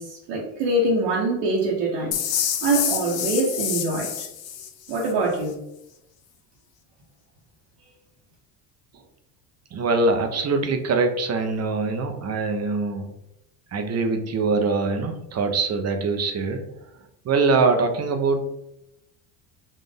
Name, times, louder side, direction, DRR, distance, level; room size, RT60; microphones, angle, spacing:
voice 1, 0.0-2.2 2.6-4.3 4.9-5.6, right 2 dB, 70° right, -5 dB, 1.1 m, -24 dB
sound 1, 2.1-5.1, left 9 dB, 50° left, 0.7 m, -27 dB
voice 2, 9.7-13.1 13.7-16.6 17.2-18.4, right 3 dB, 30° right, 6 dB, 0.6 m, -23 dB
4.1 x 2.5 x 3.4 m, 0.84 s
supercardioid pair, 90°, 48 cm